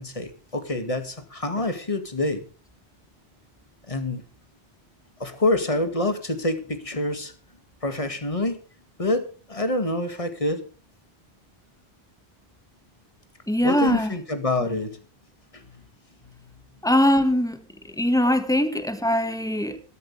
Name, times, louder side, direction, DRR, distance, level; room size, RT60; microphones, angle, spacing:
voice 1, 0.0-2.4 3.9-4.2 5.2-7.3 7.8-8.6 9.0-10.7 13.6-15.0 15.5-15.6, left 2 dB, 30° left, 2.2 m, -26 dB
voice 2, 13.5-14.2 14.6-14.8 16.8-19.8, left 1 dB, 5° left, 1.7 m, -22 dB
17.5 x 13.0 x 3.5 m
omnidirectional pair, 1.1 m